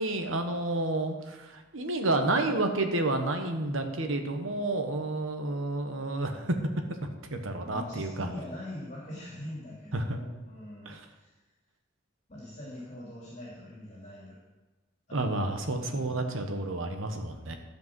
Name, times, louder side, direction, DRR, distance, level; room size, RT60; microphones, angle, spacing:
voice 1, 0.0-6.5 6.9-8.3 9.9-10.2 10.8-11.0 15.1-17.5, right 2 dB, 85° right, 5 dB, 1.2 m, -30 dB
voice 2, 7.6-11.3 12.3-14.3 15.1-16.3, left 1 dB, 35° left, -6 dB, 2.8 m, -43 dB
12.5 x 5.2 x 6.2 m, 1.2 s
head